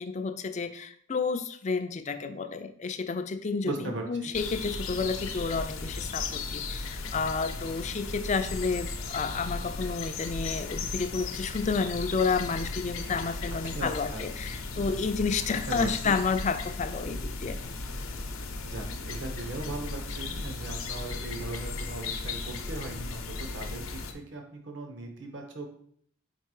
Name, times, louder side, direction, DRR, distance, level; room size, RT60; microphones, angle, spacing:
voice 1, 0.0-17.6, left 4 dB, 35° left, 9 dB, 0.4 m, -31 dB
voice 2, 3.6-4.3 13.6-14.4 15.5-16.1 18.6-25.8, right 2 dB, 60° right, 2 dB, 1.0 m, -38 dB
sound 1, 4.3-24.1, left 3 dB, 90° left, 0.7 m, -36 dB
4.7 x 4.4 x 4.8 m, 0.63 s
head